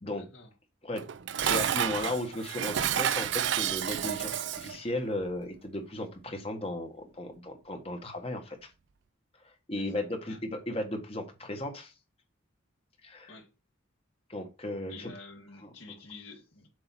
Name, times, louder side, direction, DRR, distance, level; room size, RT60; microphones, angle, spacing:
voice 1, 0.1-0.5 9.8-10.4 13.3-13.5 14.9-16.7, left 3 dB, 65° left, 1.9 m, -49 dB
Dishes pots and pans, 1.0-4.8, right 9 dB, 60° right, 0.4 m, -30 dB
voice 2, 1.4-8.7 9.4-11.9 13.0-13.3 14.3-15.1 15.6-15.7, left 1 dB, 30° left, 1.3 m, -35 dB
7.7 x 2.8 x 5.8 m
head